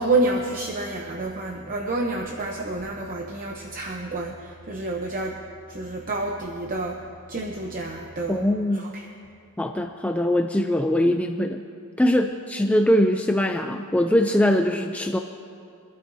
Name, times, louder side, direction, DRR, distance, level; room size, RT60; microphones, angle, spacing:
voice 1, 0.0-5.4 5.7-7.0 7.3-8.4 8.9-9.0, right 2 dB, 40° right, 1 dB, 0.8 m, -28 dB
voice 2, 8.3-8.9 9.6-11.6 12.0-15.2, left 1 dB, 5° left, 5 dB, 0.4 m, -22 dB
24.0 x 12.5 x 2.7 m, 2.4 s
head